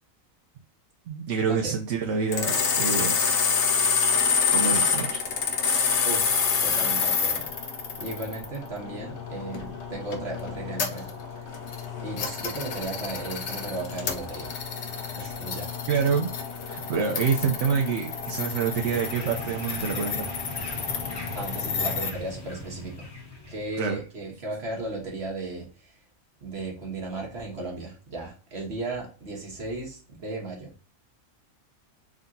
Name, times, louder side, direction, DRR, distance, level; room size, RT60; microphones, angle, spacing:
voice 1, 1.1-3.7 4.5-5.2 15.9-16.3 16.7-20.3 23.8-24.0, right 6 dB, 65° right, 2 dB, 0.9 m, -27 dB
sound 1, 2.3-22.1, left 6 dB, 60° left, 1.0 m, -28 dB
voice 2, 6.0-7.5 8.0-11.5 12.0-14.5 15.1-15.7 21.3-23.1 23.5-26.0 26.4-30.7, right 2 dB, 50° right, -1 dB, 1.7 m, -35 dB
sound 2, 18.7-23.8, left 1 dB, 20° left, 1.0 m, -39 dB
3.8 x 2.7 x 3.6 m, 0.38 s
omnidirectional pair, 1.4 m